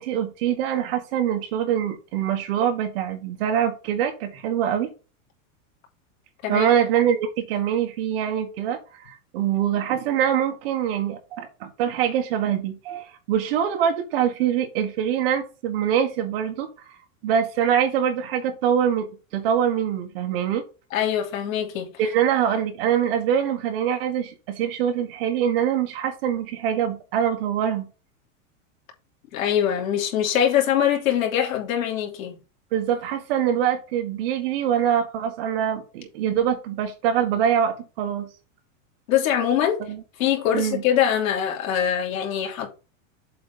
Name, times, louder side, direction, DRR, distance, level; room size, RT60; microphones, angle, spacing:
voice 1, 0.0-4.9 6.5-16.7 17.2-20.6 22.0-27.9 32.7-38.3 39.8-40.0 40.5-40.8, right 9 dB, 45° right, 1.5 m, -24 dB
voice 2, 20.9-21.9 29.3-32.4 39.1-39.8 40.2-42.7, left 10 dB, 85° left, 3.0 m, -23 dB
7.6 x 3.9 x 5.5 m
supercardioid pair, 175°, 40 cm